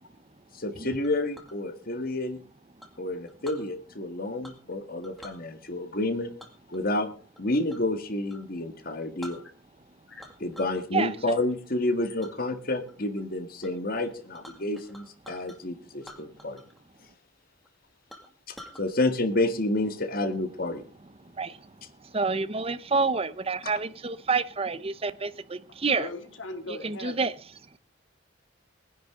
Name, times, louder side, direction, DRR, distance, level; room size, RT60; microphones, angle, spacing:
voice 1, 0.6-2.4 3.0-6.3 6.7-7.1 7.4-9.4 10.4-16.6 18.8-20.8 23.6-23.7, left 2 dB, 50° left, 1.8 m, -29 dB
Chink clink, 1.0-1.6 2.8-3.7 4.4-4.7 5.0-5.4 6.4-7.9 8.3-8.5 8.9-9.0 9.2-9.8 10.2-10.8 11.2-11.6 12.2-12.3 12.9-13.2 13.6-13.7 14.0-15.6 16.0-16.8 17.1-17.2 17.6-17.7 18.1-18.8, equal, ahead, 2.2 m, -48 dB
voice 2, 22.1-26.1 26.8-27.3, right 4 dB, 30° right, 0.8 m, -28 dB
voice 3, 25.9-27.3, left 2 dB, 85° left, 2.8 m, -39 dB
20.0 x 10.5 x 3.8 m
head